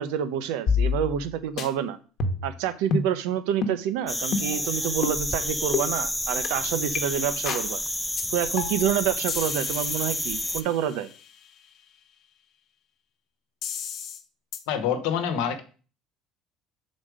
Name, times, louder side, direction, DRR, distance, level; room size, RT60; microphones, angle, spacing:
voice 1, 0.0-2.0 2.4-7.8 8.3-11.1, right 10 dB, 90° right, 0.7 m, -28 dB
sound 1, 0.7-1.3 1.6-1.7 2.2-2.6 2.9-3.1 3.6-3.8 4.3-4.6 5.0-5.2 5.7-5.9 6.4-6.5 6.9-7.0 7.5-7.7 8.2-8.3 8.6-8.9 9.3-11.1 13.6-14.2 14.5-14.6, left 5 dB, 60° left, 1.0 m, -29 dB
sound 2, 4.1-10.6, left 1 dB, 5° left, 0.4 m, -30 dB
voice 2, 14.7-15.6, left 8 dB, 90° left, 1.0 m, -26 dB
6.3 x 4.1 x 4.8 m
cardioid pair, 110°, 0 cm